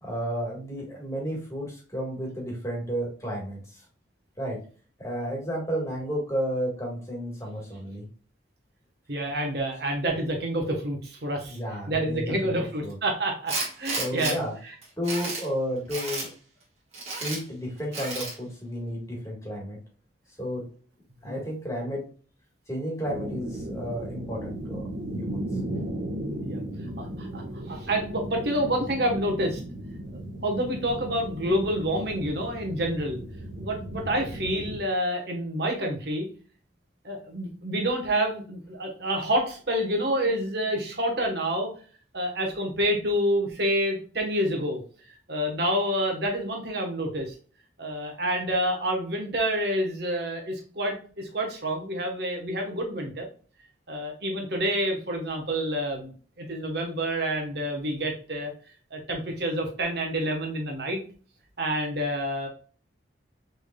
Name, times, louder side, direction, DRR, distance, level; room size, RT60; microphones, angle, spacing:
voice 1, 0.0-3.8 4.4-4.6 5.0-8.1 11.5-12.5 12.8-13.0 14.0-14.5 15.0-16.3 17.2-19.8 20.4-20.6 21.2-22.0 22.7-25.4, equal, 15° left, -2 dB, 1.5 m, -32 dB
voice 2, 9.1-11.6 11.9-14.3 21.2-21.4 26.4-26.6 27.0-29.6 30.4-33.2 33.6-36.3 37.0-41.7 42.1-44.8 45.3-47.3 47.8-53.3 53.9-56.1 56.4-58.5 58.9-61.0 61.6-62.5, equal, 55° right, 1 dB, 1.2 m, -28 dB
Tools, 13.5-14.3 14.8-15.5 15.9-16.3 16.9-17.4 17.9-18.3, right 3 dB, 35° right, 1.7 m, -32 dB
sound 1, 23.0-34.8, right 1 dB, 75° right, 1.0 m, -36 dB
6.0 x 3.4 x 2.2 m, 0.41 s
head